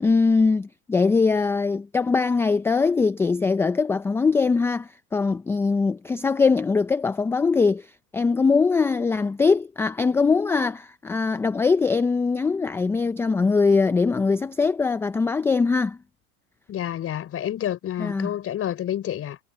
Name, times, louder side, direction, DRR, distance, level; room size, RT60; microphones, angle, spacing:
voice 1, 0.0-7.9 8.1-16.0 18.0-18.3, left 4 dB, 5° left, 0.4 m, -22 dB
voice 2, 16.7-19.4, left 11 dB, 30° left, 4.6 m, -29 dB
hypercardioid pair, 120°, 44 cm